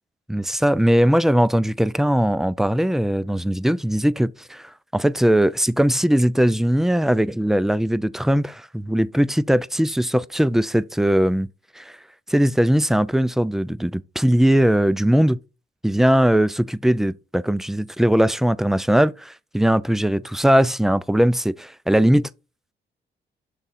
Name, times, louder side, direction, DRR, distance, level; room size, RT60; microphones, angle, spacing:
voice 1, 0.3-11.5 11.8-11.9 12.3-15.4 15.8-22.3, equal, ahead, 0.3 m, -20 dB
6.8 x 3.6 x 4.1 m
cardioid pair, 90°, 19 cm